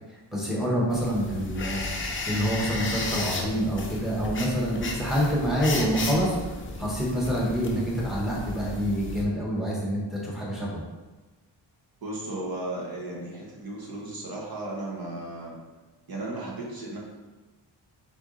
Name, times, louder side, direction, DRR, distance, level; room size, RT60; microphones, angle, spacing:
voice 1, 0.3-10.8, equal, ahead, -5 dB, 1.0 m, -27 dB
sound 1, 0.9-9.2, left 2 dB, 25° left, 0.5 m, -34 dB
voice 2, 12.0-15.6 16.1-17.0, right 2 dB, 50° right, -3 dB, 1.0 m, -35 dB
3.9 x 3.4 x 3.7 m, 1.2 s
wide cardioid pair, 155°, 46 cm